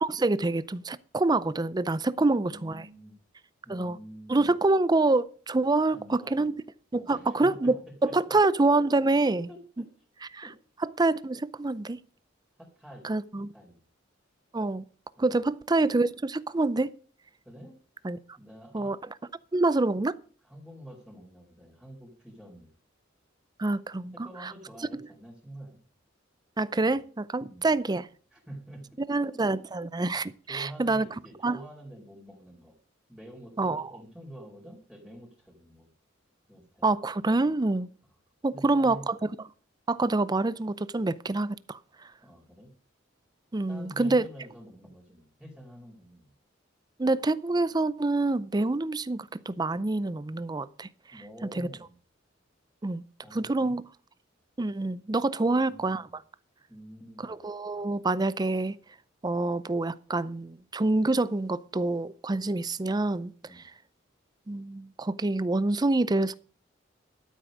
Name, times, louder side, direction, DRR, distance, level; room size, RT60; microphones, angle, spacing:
voice 1, 0.0-2.9 3.7-4.0 4.3-6.5 6.9-7.8 8.0-9.5 10.3-10.4 11.0-12.0 13.0-13.5 14.5-14.8 15.2-16.9 18.0-18.2 18.7-19.0 19.5-20.2 23.6-24.1 24.4-24.5 26.6-28.1 29.1-31.1 31.4-31.6 33.6-33.8 36.8-37.9 38.4-39.2 39.9-41.8 43.5-44.3 47.0-50.9 51.6-51.7 52.8-53.0 53.3-53.8 54.6-56.1 57.2-58.7 59.2-63.3 64.5-66.3, right 2 dB, 20° right, 0.5 m, -26 dB
voice 2, 2.2-3.2 3.6-4.6 5.9-6.5 7.0-8.3 8.7-8.8 9.0-9.9 10.4-10.5 12.6-13.1 13.5-13.8 15.2-15.4 17.4-17.8 18.4-18.9 20.4-22.7 24.1-25.8 26.7-26.9 27.4-27.7 28.3-29.6 30.5-32.7 33.1-35.9 36.5-37.0 38.5-39.1 42.2-42.7 43.7-46.3 51.1-51.9 53.2-53.8 55.4-56.1 56.7-57.3 63.4-63.6, right 1 dB, 5° right, 4.0 m, -47 dB
13.0 x 7.9 x 6.3 m
head